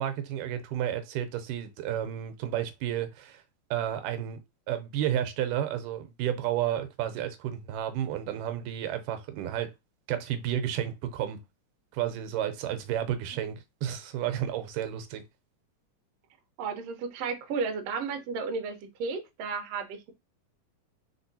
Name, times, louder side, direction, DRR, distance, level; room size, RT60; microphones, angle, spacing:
voice 1, 0.0-3.4 3.7-4.4 4.7-9.7 10.1-11.4 11.9-15.2, right 11 dB, 90° right, 2.3 m, -31 dB
voice 2, 16.6-20.1, right 5 dB, 65° right, 1.7 m, -33 dB
4.3 x 4.2 x 2.7 m
omnidirectional pair, 3.7 m